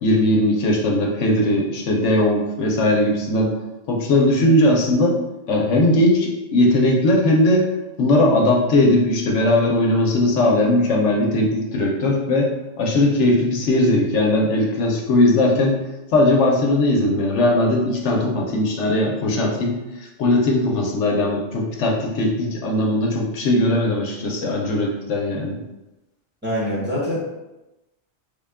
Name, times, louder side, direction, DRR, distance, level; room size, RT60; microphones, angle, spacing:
voice 1, 0.0-3.5 3.9-5.2 5.5-7.7 8.0-12.5 12.8-15.8 16.1-19.8 20.2-25.6, left 1 dB, 80° left, 0 dB, 1.0 m, -19 dB
voice 2, 26.4-27.2, equal, 10° right, -7 dB, 0.8 m, -24 dB
3.6 x 2.2 x 3.5 m, 0.98 s
omnidirectional pair, 1.2 m